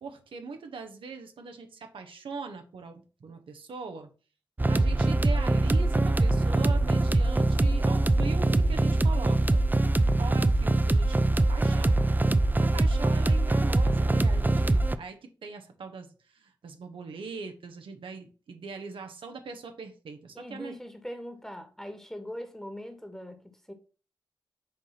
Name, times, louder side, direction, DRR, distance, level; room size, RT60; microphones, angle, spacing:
voice 1, 0.0-4.1 4.7-9.6 10.2-12.0 12.6-20.8, right 4 dB, 75° right, 1.1 m, -41 dB
sound 1, 4.6-15.0, right 2 dB, 20° right, 0.5 m, -23 dB
voice 2, 20.3-23.4 23.7-23.8, equal, 5° left, 1.6 m, -41 dB
7.0 x 2.7 x 5.8 m
cardioid pair, 45°, 9 cm